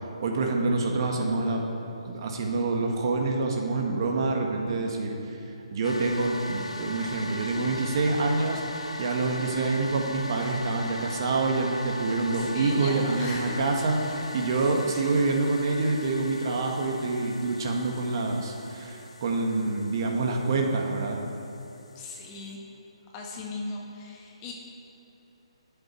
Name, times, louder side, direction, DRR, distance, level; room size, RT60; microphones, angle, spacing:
voice 1, 0.2-1.7 2.0-5.4 5.7-21.2, right 3 dB, 45° right, 1 dB, 1.7 m, -27 dB
sound 1, 5.8-22.5, equal, 85° left, 1.2 m, -39 dB
voice 2, 12.3-14.0 14.6-15.2 21.9-22.6 23.1-24.5, left 2 dB, 25° left, -1 dB, 1.8 m, -38 dB
22.5 x 7.8 x 4.5 m, 3.0 s
hypercardioid pair, 155°, 3 cm